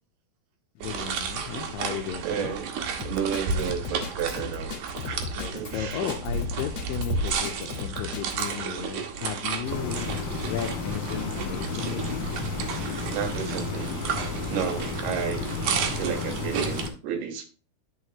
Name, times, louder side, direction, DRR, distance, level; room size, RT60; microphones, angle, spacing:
voice 1, 0.8-2.6 5.4-10.2 10.5-12.3, left 11 dB, 80° left, 5 dB, 2.1 m, -35 dB
sound 1, 0.8-16.9, right 5 dB, 65° right, 2.2 m, -32 dB
voice 2, 2.2-2.7 3.0-4.7 5.1-6.1 8.7-8.9 13.1-14.0 14.5-15.5 16.0-17.4, right 8 dB, 90° right, 6 dB, 3.5 m, -32 dB
Drum kit, 3.0-8.5, left 8 dB, 60° left, 1.9 m, -37 dB
sound 2, 9.6-16.9, left 4 dB, 40° left, 2.2 m, -32 dB
12.5 x 4.9 x 2.8 m, 0.36 s
omnidirectional pair, 4.5 m